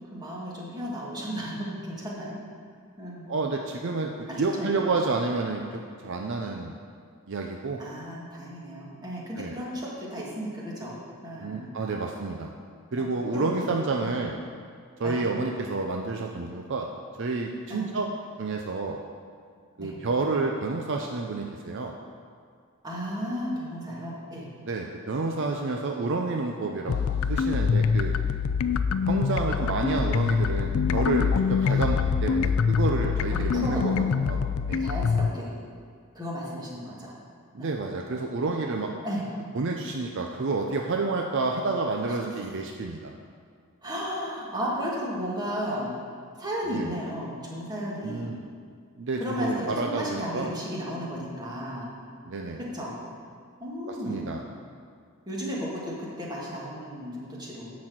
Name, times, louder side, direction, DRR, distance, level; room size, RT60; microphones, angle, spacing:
voice 1, 0.1-2.4 3.0-3.3 4.3-4.8 7.8-11.7 13.0-13.5 14.0-14.2 15.0-15.2 17.7-17.9 19.8-19.9 22.8-24.5 31.7-31.8 33.3-34.1 34.8-35.5 36.1-37.1 37.6-37.8 39.0-39.2 43.8-45.9 46.4-48.3 49.2-51.9 52.6-53.0 53.6-54.3 55.3-57.7, equal, 20° right, -5 dB, 2.0 m, -34 dB
voice 2, 3.3-6.7 7.3-7.8 9.3-9.5 11.4-12.5 12.9-14.3 15.0-16.9 17.2-18.1 18.4-19.0 19.8-21.9 24.7-27.0 27.3-28.1 29.1-34.4 34.7-34.8 37.5-38.9 39.5-43.1 46.7-46.9 48.0-48.4 49.0-50.5 52.3-52.6 53.9-54.4, right 3 dB, 55° right, 1 dB, 0.6 m, -29 dB
sound 1, 26.9-35.3, left 6 dB, 70° left, 0.4 m, -25 dB
10.5 x 4.2 x 7.7 m, 2.1 s
head